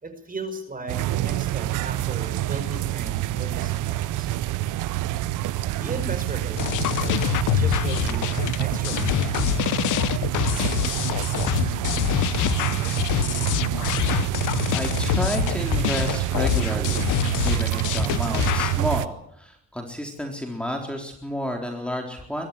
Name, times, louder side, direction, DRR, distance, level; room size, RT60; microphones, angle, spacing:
voice 1, 0.0-4.3 5.8-9.3, right 2 dB, 30° right, 8 dB, 5.5 m, -36 dB
sound 1, 0.9-19.1, right 15 dB, 90° right, 0.9 m, -27 dB
sound 2, 6.6-18.8, left 15 dB, 85° left, 0.8 m, -25 dB
voice 2, 14.7-17.1 17.4-22.5, equal, 5° left, 2 dB, 3.9 m, -31 dB
23.0 x 13.5 x 9.8 m, 0.75 s
cardioid pair, 90°, 30 cm